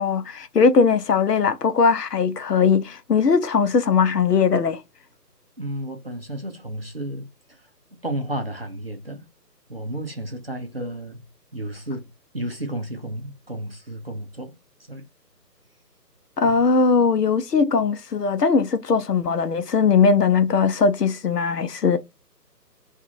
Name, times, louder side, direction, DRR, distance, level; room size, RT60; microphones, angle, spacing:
voice 1, 0.0-4.8 16.4-22.0, left 5 dB, 70° left, 0.7 m, -19 dB
voice 2, 5.6-7.6 8.0-9.2 9.7-11.3 11.5-14.5 14.9-15.0 16.4-16.6, right 1 dB, 40° right, 0.5 m, -32 dB
2.5 x 2.5 x 2.8 m
figure-of-eight pair, 155°, 50 cm